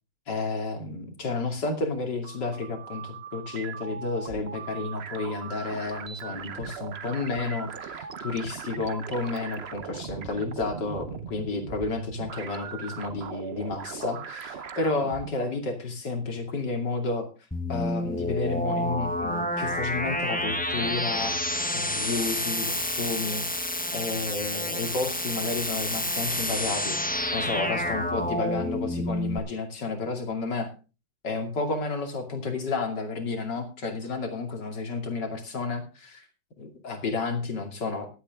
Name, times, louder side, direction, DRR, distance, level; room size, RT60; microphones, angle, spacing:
voice 1, 0.3-17.3 17.7-21.4 21.7-27.0 27.3-30.7 31.2-36.3 36.6-38.1, left 3 dB, 75° left, 5 dB, 3.2 m, -31 dB
sound 1, 2.0-15.3, right 7 dB, 45° right, 1.0 m, -39 dB
sound 2, 17.5-29.4, left 1 dB, 5° left, 0.9 m, -29 dB
16.0 x 12.0 x 3.6 m, 0.33 s
omnidirectional pair, 1.9 m